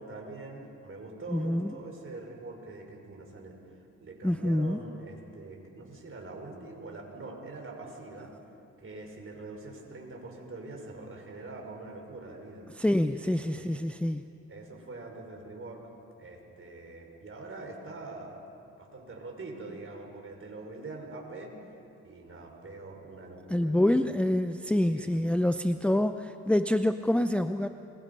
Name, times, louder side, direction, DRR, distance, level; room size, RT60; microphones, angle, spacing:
voice 1, 0.0-3.6 4.0-8.3 8.8-12.7 13.2-13.8 14.5-15.8 16.2-18.4 18.8-21.5 22.0-24.2 24.9-25.3, right 3 dB, 45° right, 1 dB, 5.6 m, -44 dB
voice 2, 1.3-1.7 4.2-4.8 12.8-14.3 23.5-27.7, left 1 dB, 5° left, 9 dB, 0.6 m, -26 dB
28.5 x 23.0 x 5.5 m, 2.7 s
cardioid pair, 75°, 31 cm